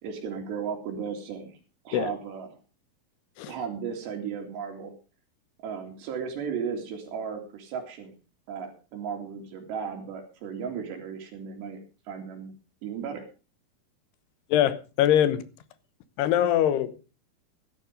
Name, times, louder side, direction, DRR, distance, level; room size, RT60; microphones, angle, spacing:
voice 1, 0.0-1.6 1.9-2.6 3.5-5.0 5.6-8.1 8.5-11.8 12.1-12.5 12.8-13.3, right 6 dB, 90° right, 4.7 m, -35 dB
voice 2, 14.5-15.4 16.2-17.1, left 11 dB, 80° left, 3.1 m, -23 dB
15.0 x 11.5 x 5.1 m
omnidirectional pair, 4.7 m